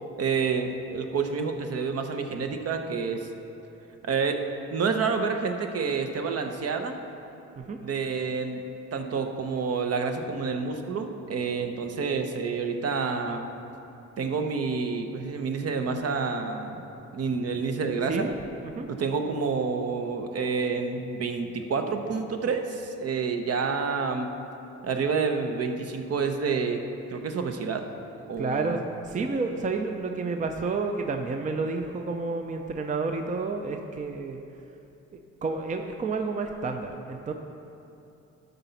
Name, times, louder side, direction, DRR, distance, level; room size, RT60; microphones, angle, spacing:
voice 1, 0.2-3.2 4.0-4.4 4.7-7.0 7.8-8.6 8.9-13.4 14.2-16.8 17.1-18.3 18.9-24.3 24.8-26.8 27.1-27.9 28.3-28.8, right 5 dB, 55° right, 5 dB, 0.8 m, -28 dB
voice 2, 28.4-34.4 35.4-37.3, right 3 dB, 25° right, 5 dB, 0.5 m, -30 dB
12.0 x 4.0 x 5.7 m, 2.9 s
cardioid pair, 90°, 30 cm